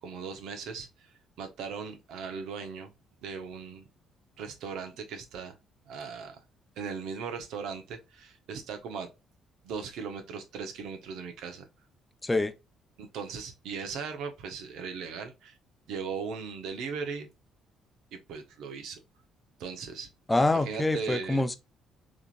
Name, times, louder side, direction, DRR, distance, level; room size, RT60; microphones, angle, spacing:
voice 1, 0.0-2.9 3.2-3.8 4.4-5.6 5.9-6.4 6.8-9.1 9.6-11.7 13.0-15.6 15.9-17.3 18.1-19.0 19.6-20.1 20.5-21.4, right 5 dB, 75° right, 1.1 m, -38 dB
voice 2, 12.2-12.5 20.3-21.6, left 2 dB, 15° left, 0.7 m, -25 dB
3.7 x 3.1 x 2.5 m
supercardioid pair, 70°, 0 cm